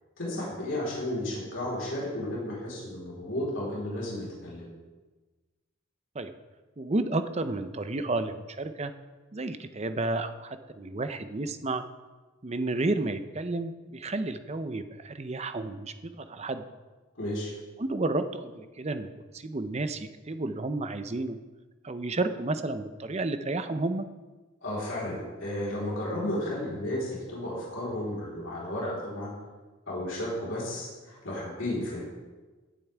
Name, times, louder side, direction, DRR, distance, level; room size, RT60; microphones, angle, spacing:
voice 1, 0.2-4.7 17.2-17.5 24.6-29.3 29.9-32.0, left 1 dB, 65° left, -6 dB, 4.1 m, -33 dB
voice 2, 6.8-8.9 9.3-11.8 12.4-16.6 17.8-21.4 21.8-24.1, right 2 dB, 30° right, 10 dB, 0.7 m, -31 dB
17.0 x 9.1 x 3.5 m, 1.3 s
head